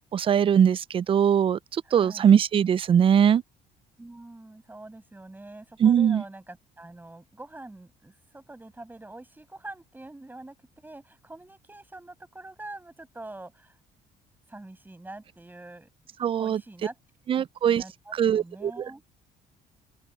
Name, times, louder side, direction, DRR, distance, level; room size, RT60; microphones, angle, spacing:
voice 1, 0.1-3.4 5.8-6.2 16.2-16.6 17.3-17.8 18.1-19.0, right 8 dB, 30° right, 0.4 m, -21 dB
voice 2, 1.8-2.4 4.0-10.5 10.8-13.8 14.5-15.9 16.3-17.0 17.4-19.0, right 2 dB, 10° right, 6.6 m, -45 dB
open air
cardioid pair, 110°, 17 cm